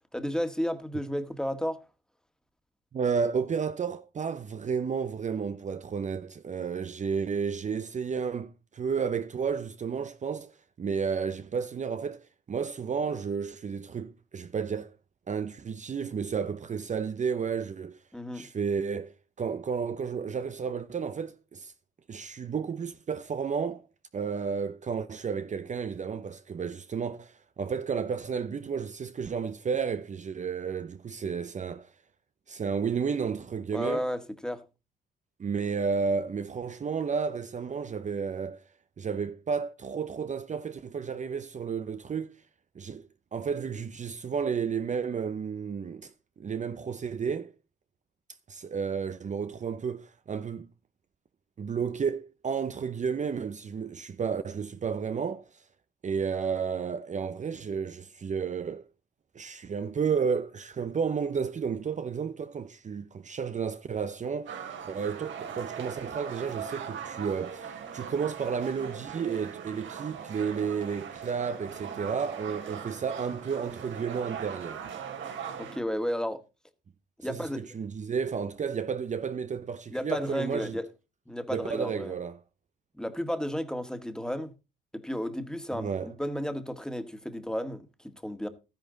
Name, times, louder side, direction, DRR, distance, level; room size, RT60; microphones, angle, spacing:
voice 1, 0.1-1.8 18.1-18.5 33.7-34.6 75.6-76.4 77.2-77.6 79.9-80.9 81.3-82.1 83.0-84.5 84.9-88.5, equal, 5° left, 1.8 m, -33 dB
voice 2, 2.9-14.9 15.3-18.0 18.3-21.7 22.1-23.8 24.1-31.9 32.5-34.0 35.4-38.6 39.0-42.3 42.7-47.5 48.5-50.7 51.6-55.6 56.0-58.8 59.3-74.8 77.3-80.8 81.5-82.4 85.7-86.1, right 6 dB, 40° right, 0.8 m, -32 dB
sound 1, 64.5-75.8, right 7 dB, 75° right, 3.0 m, -40 dB
13.0 x 10.5 x 3.9 m
cardioid pair, 90°, 20 cm